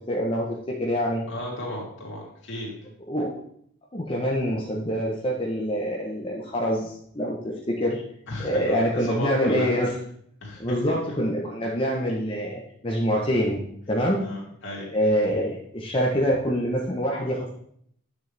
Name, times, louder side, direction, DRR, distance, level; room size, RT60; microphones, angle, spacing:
voice 1, 0.1-1.2 3.1-3.3 3.9-8.0 8.4-9.9 10.6-13.6 13.9-14.2 14.9-17.5, equal, 25° left, -3 dB, 0.9 m, -25 dB
voice 2, 1.3-2.7 8.3-9.7 10.4-10.7 14.2-14.9, left 1 dB, 60° left, -4 dB, 3.1 m, -34 dB
9.7 x 6.5 x 3.4 m, 0.68 s
head